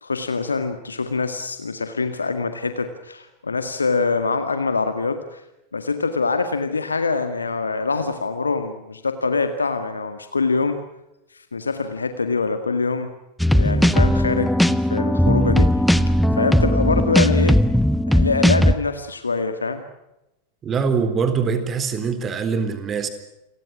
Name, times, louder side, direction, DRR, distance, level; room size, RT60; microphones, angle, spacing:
voice 1, 0.0-5.4 5.7-10.8 11.3-13.1 13.5-14.5 14.8-15.7 16.4-17.6 18.1-19.8, left 4 dB, 75° left, 8 dB, 1.9 m, -24 dB
sound 1, 13.4-18.7, equal, ahead, 1.2 m, -18 dB
voice 2, 20.6-23.1, right 5 dB, 25° right, 10 dB, 3.9 m, -23 dB
29.0 x 24.0 x 6.3 m, 0.91 s
figure-of-eight pair, 90°, 0 cm